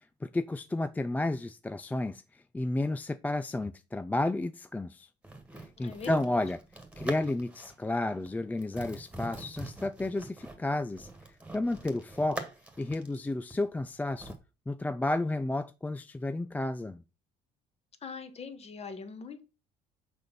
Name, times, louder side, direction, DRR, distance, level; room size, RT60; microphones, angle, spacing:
voice 1, 0.2-5.1 5.8-6.6 7.0-11.1 11.5-12.5 12.8-14.3 14.7-17.0, left 2 dB, 10° left, 0.3 m, -32 dB
sound 1, 5.2-7.9 8.1-8.3 8.6-14.4, right 2 dB, 5° right, 1.7 m, -44 dB
voice 2, 5.8-6.4 18.0-19.4, left 5 dB, 40° left, 1.5 m, -42 dB
6.7 x 5.3 x 5.8 m
cardioid pair, 110°, 17 cm